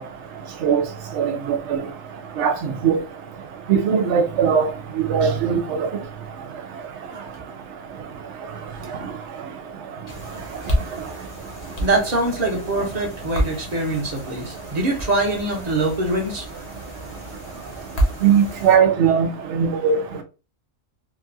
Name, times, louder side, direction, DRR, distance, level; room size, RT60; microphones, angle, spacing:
voice 1, 1.2-1.8 2.4-2.5 2.8-3.0 3.7-4.7 5.1-5.9 18.2-19.9, right 7 dB, 70° right, 0.8 m, -19 dB
sound 1, 10.1-18.8, equal, 40° left, 0.6 m, -30 dB
voice 2, 11.8-16.5, right 2 dB, 35° right, 0.9 m, -23 dB
2.9 x 2.3 x 2.5 m
omnidirectional pair, 1.4 m